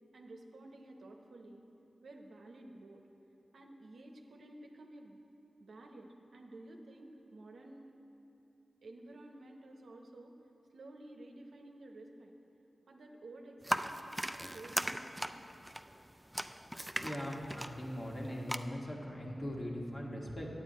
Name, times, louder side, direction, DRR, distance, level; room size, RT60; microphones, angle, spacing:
voice 1, 0.1-1.7 2.0-3.0 3.5-5.2 5.6-7.9 8.8-10.4 10.7-12.3 12.9-15.5, right 2 dB, 85° right, 2 dB, 0.7 m, -52 dB
sound 1, 13.6-18.6, right 1 dB, 10° right, 0.3 m, -38 dB
voice 2, 16.9-20.5, equal, 45° left, -3 dB, 1.6 m, -40 dB
9.2 x 8.5 x 4.2 m, 2.9 s
cardioid pair, 50°, 0 cm